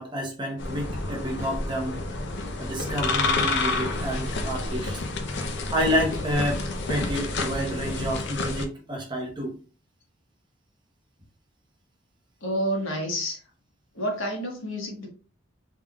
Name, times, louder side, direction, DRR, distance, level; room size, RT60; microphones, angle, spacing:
voice 1, 0.0-2.0 2.6-5.0 5.7-9.5, equal, 20° right, -1 dB, 0.9 m, -29 dB
sound 1, 0.6-8.6, left 3 dB, 55° left, 0.6 m, -29 dB
voice 2, 12.4-13.4 13.9-15.1, equal, 75° left, 0 dB, 1.4 m, -29 dB
3.6 x 3.5 x 2.3 m, 0.37 s
head